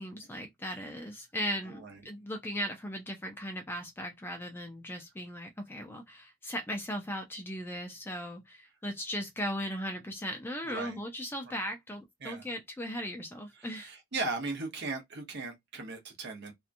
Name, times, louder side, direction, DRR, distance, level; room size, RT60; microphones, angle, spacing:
voice 1, 0.0-13.9, equal, 10° left, 0.3 m, -38 dB
voice 2, 1.7-2.0 10.6-10.9 11.5-11.6 12.2-12.5 13.6-16.5, right 3 dB, 50° right, 0.8 m, -38 dB
2.8 x 2.3 x 2.5 m
head